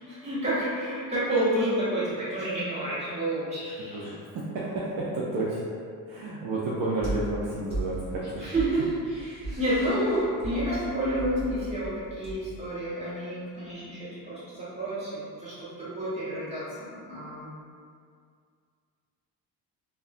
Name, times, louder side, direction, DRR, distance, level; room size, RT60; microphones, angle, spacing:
voice 1, 0.0-4.0 8.4-17.5, right 1 dB, 15° right, -12 dB, 1.0 m, -30 dB
voice 2, 3.9-5.6 6.1-8.5, right 2 dB, 60° right, -6 dB, 0.5 m, -31 dB
sound 1, 7.0-12.7, right 1 dB, 25° left, 1.1 m, -37 dB
2.7 x 2.2 x 2.4 m, 2.2 s
cardioid pair, 145°, 38 cm